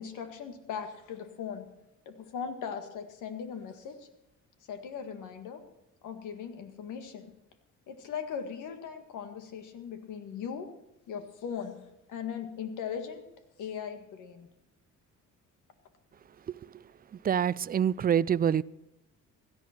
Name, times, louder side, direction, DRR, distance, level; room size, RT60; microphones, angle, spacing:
voice 1, 0.0-1.7 2.0-4.1 4.7-5.6 6.0-7.2 7.9-10.7 11.1-11.8 12.1-13.2 13.6-14.5, left 7 dB, 85° left, 1.8 m, -39 dB
voice 2, 17.2-18.6, right 8 dB, 30° right, 0.4 m, -25 dB
16.5 x 12.5 x 4.4 m
cardioid pair, 90°, 30 cm